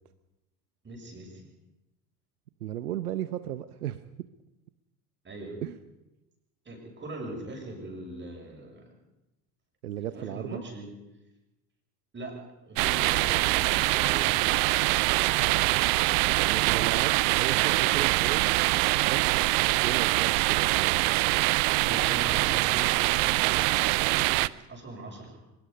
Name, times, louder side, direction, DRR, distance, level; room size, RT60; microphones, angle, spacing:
voice 1, 0.8-1.5 5.2-5.6 6.6-8.9 10.0-10.9 12.1-14.6 21.8-23.6 24.1-25.4, right 1 dB, 25° right, 1 dB, 6.7 m, -41 dB
voice 2, 2.6-4.0 5.6-5.8 9.8-10.6 15.4-18.5 18.9-19.4 19.7-21.6, right 12 dB, 75° right, 12 dB, 1.0 m, -36 dB
sound 1, 12.8-24.5, right 23 dB, 45° right, 0.7 m, -24 dB
24.0 x 22.5 x 5.4 m, 0.96 s
figure-of-eight pair, 70°, 46 cm